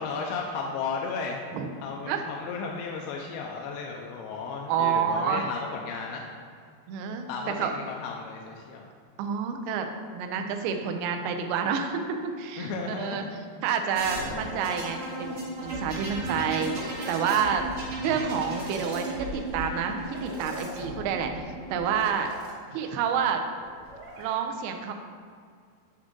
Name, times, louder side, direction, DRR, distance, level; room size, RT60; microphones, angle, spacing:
voice 1, 0.0-1.4 1.8-6.2 7.3-8.9 12.6-13.3, left 4 dB, 85° left, 0 dB, 2.5 m, -34 dB
voice 2, 4.7-5.5 6.9-7.3 7.6-7.7 9.2-9.9 10.1-13.2 13.6-17.6 18.0-22.3 22.7-23.4 24.2-24.9, right 7 dB, 80° right, 5 dB, 2.3 m, -29 dB
sound 1, 13.9-22.5 23.6-24.2, right 1 dB, 60° right, 1.6 m, -36 dB
8.6 x 3.7 x 3.7 m, 2.2 s
omnidirectional pair, 4.8 m